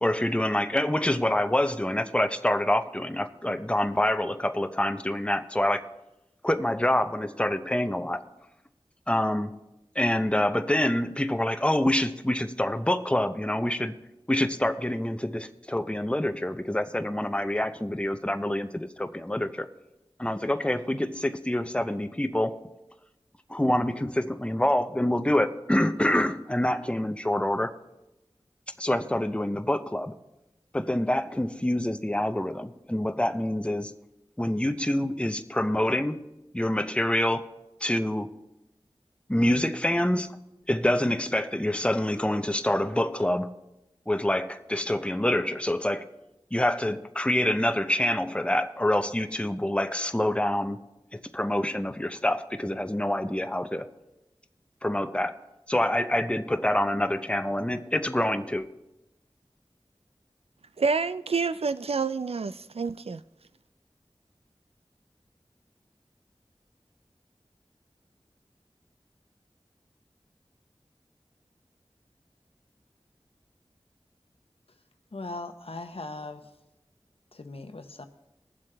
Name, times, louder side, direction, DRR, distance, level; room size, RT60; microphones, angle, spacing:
voice 1, 0.0-5.8 6.4-8.2 9.1-9.6 10.0-13.9 14.3-19.7 20.2-22.6 23.5-27.7 28.8-30.1 30.7-33.9 34.4-36.2 36.5-37.5 37.8-38.4 39.3-40.4 40.7-43.5 44.1-46.1 46.5-50.8 51.1-53.9 54.8-55.4 55.7-58.7, left 1 dB, 10° left, 0.6 m, -26 dB
voice 2, 60.8-63.2, right 4 dB, 75° right, 0.4 m, -28 dB
voice 3, 75.1-76.4 77.3-78.1, left 2 dB, 70° left, 0.9 m, -39 dB
21.0 x 7.4 x 3.4 m
wide cardioid pair, 45°, 10 cm